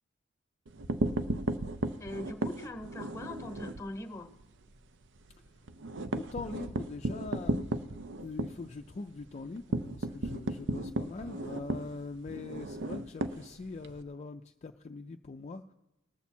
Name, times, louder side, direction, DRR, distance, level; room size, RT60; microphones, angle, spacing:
sound 1, 0.7-3.9 4.2-4.4 4.7-4.8 5.2-14.0, right 2 dB, 65° right, 0.6 m, -35 dB
voice 1, 2.0-4.3, left 1 dB, 15° left, 7 dB, 1.0 m, -41 dB
voice 2, 6.1-7.6 8.2-15.7, left 3 dB, 35° left, 5 dB, 0.4 m, -42 dB
19.0 x 7.1 x 4.3 m, 0.97 s
head